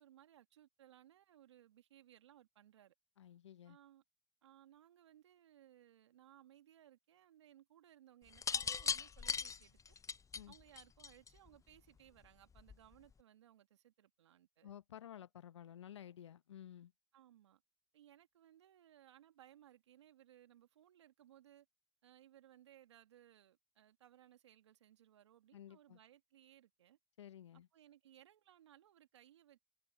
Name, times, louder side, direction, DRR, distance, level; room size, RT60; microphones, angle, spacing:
voice 1, 0.0-2.9 3.7-4.0 4.4-10.0 10.5-14.7 17.1-17.6 17.9-21.7 22.0-27.0 27.7-29.6, right 12 dB, 85° right, 1.9 m, -64 dB
voice 2, 3.2-3.8 10.3-10.5 14.6-16.9 25.5-26.0 27.2-27.7, left 10 dB, 90° left, 0.9 m, -53 dB
sound 1, 8.3-11.5 12.6-12.9, left 6 dB, 20° left, 0.5 m, -39 dB
hypercardioid pair, 70°, 14 cm